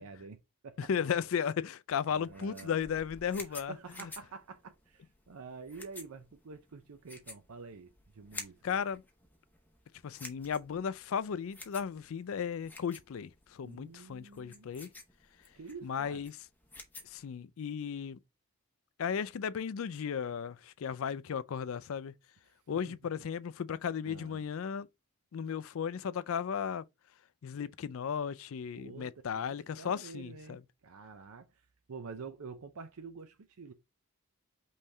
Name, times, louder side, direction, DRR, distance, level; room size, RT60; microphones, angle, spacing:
voice 1, 0.0-0.9 2.0-2.9 3.6-8.8 13.6-14.7 15.5-16.2 22.7-22.8 24.1-24.4 28.7-33.7, right 4 dB, 80° right, 0.5 m, -48 dB
voice 2, 0.8-3.8 4.0-4.1 8.6-9.0 10.0-14.9 15.8-16.4 17.0-18.2 19.0-22.1 22.7-24.9 25.3-26.8 27.4-30.6, left 7 dB, 65° left, 0.4 m, -35 dB
sound 1, 2.1-17.2, left 2 dB, 10° left, 0.7 m, -51 dB
5.4 x 3.2 x 2.6 m
head